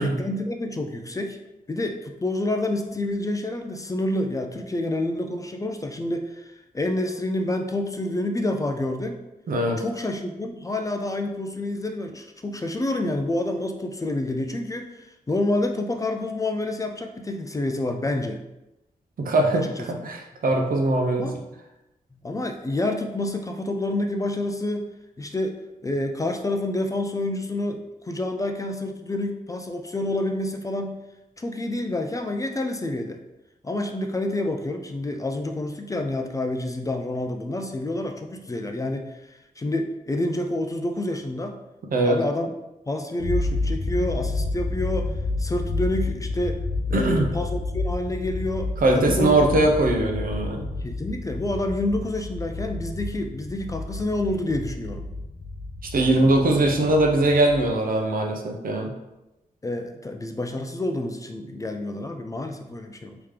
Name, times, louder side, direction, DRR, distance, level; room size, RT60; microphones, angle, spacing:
voice 1, 0.0-1.4 1.7-9.2 9.8-18.4 19.5-19.9 21.2-21.4 22.2-24.9 25.2-25.6 25.8-31.0 31.4-33.2 33.6-41.6 42.0-42.5 42.9-45.1 45.4-46.6 46.9-49.6 50.8-55.1 56.1-56.3 59.6-63.2, left 1 dB, 20° left, 5 dB, 0.3 m, -28 dB
voice 2, 9.5-9.8 19.2-21.3 41.9-42.2 46.9-47.3 48.8-50.7 55.9-58.9, right 2 dB, 70° right, 1 dB, 0.7 m, -21 dB
sound 1, 43.2-57.7, left 2 dB, 55° left, 0.8 m, -30 dB
3.5 x 2.9 x 3.3 m, 0.94 s
wide cardioid pair, 105°, 15 cm